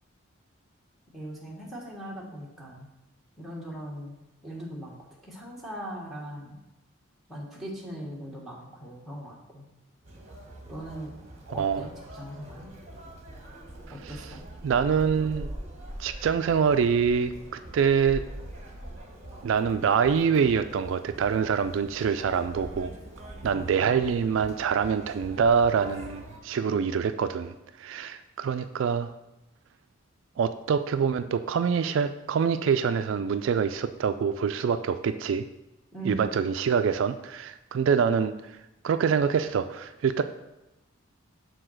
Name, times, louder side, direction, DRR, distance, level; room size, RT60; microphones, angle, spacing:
voice 1, 1.1-2.9 3.4-5.0 5.2-6.6 7.3-9.7 10.6-11.2 11.5-12.7 13.9-14.4 23.5-24.0 35.9-36.2, right 1 dB, ahead, -5 dB, 1.4 m, -40 dB
Conversation, 10.0-26.4, right 1 dB, 35° right, 1.3 m, -43 dB
voice 2, 14.6-15.5 16.0-17.3 17.7-18.2 19.4-22.9 23.4-27.5 27.8-29.1 30.4-35.5 36.1-38.3 38.8-40.2, right 6 dB, 65° right, 10 dB, 0.3 m, -25 dB
6.9 x 3.9 x 6.3 m, 0.96 s
head